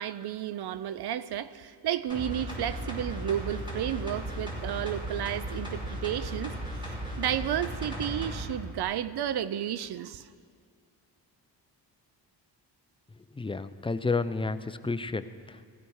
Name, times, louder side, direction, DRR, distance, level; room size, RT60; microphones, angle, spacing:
voice 1, 0.0-6.5 6.8-10.3, right 10 dB, 65° right, 0.7 m, -32 dB
sound 1, 2.1-8.4 8.8-8.9, equal, 10° right, 5.1 m, -36 dB
voice 2, 13.3-15.7, left 3 dB, 15° left, 0.5 m, -31 dB
17.5 x 15.0 x 4.8 m
cardioid pair, 85°, 43 cm